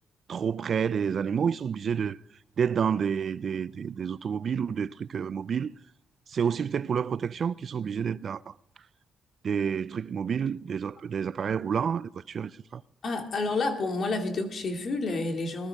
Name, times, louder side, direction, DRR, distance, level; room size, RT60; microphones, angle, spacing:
voice 1, 0.3-2.2 2.6-5.7 6.3-8.5 9.4-12.8, right 7 dB, 50° right, 0.4 m, -29 dB
voice 2, 13.0-15.7, left 3 dB, 50° left, 2.3 m, -29 dB
20.0 x 13.0 x 3.6 m
cardioid pair, 90°, 0 cm